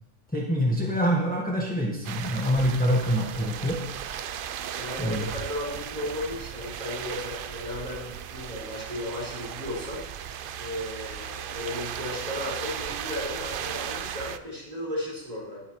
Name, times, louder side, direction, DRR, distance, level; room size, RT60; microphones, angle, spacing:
voice 1, 0.3-3.8 5.0-5.3, equal, 5° left, -3 dB, 1.3 m, -25 dB
sound 1, 2.0-14.4, right 9 dB, 60° right, 0.6 m, -36 dB
voice 2, 4.7-10.0 10.6-15.6, left 1 dB, 30° right, -6 dB, 5.1 m, -35 dB
20.0 x 8.2 x 3.1 m, 0.91 s
omnidirectional pair, 1.3 m